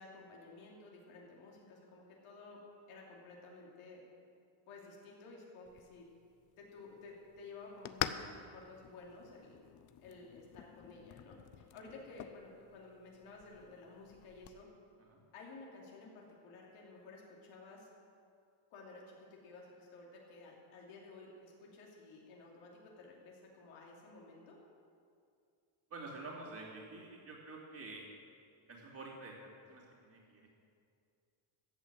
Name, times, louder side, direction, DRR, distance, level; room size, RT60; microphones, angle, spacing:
voice 1, 0.0-2.6 2.9-4.0 4.7-6.1 6.6-9.5 10.0-14.7 15.3-17.9 18.7-24.6, left 3 dB, 80° left, -2 dB, 3.1 m, -54 dB
sound 1, 5.7-14.6, left 10 dB, 40° left, 0.6 m, -47 dB
voice 2, 25.9-28.0 28.7-30.5, right 2 dB, 40° right, -9 dB, 3.1 m, -48 dB
14.5 x 8.0 x 7.7 m, 2.3 s
cardioid pair, 135°, 49 cm